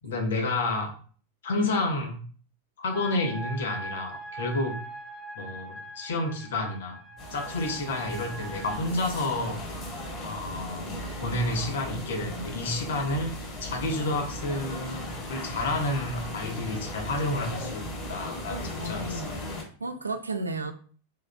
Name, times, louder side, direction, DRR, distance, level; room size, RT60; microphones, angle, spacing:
voice 1, 0.0-0.9 1.4-2.2 2.8-4.7 5.3-7.0 7.3-9.6 10.2-10.9 11.2-13.3 13.6-19.4, left 2 dB, 60° left, 2 dB, 1.1 m, -30 dB
sound 1, 2.9-8.8, right 1 dB, ahead, 0.9 m, -41 dB
sound 2, 7.2-19.6, left 1 dB, 30° left, 1.8 m, -37 dB
voice 2, 11.3-11.7 18.8-19.3 19.8-20.7, right 2 dB, 80° right, 8 dB, 0.5 m, -34 dB
4.4 x 3.6 x 2.2 m, 0.43 s
figure-of-eight pair, 90°, 0 cm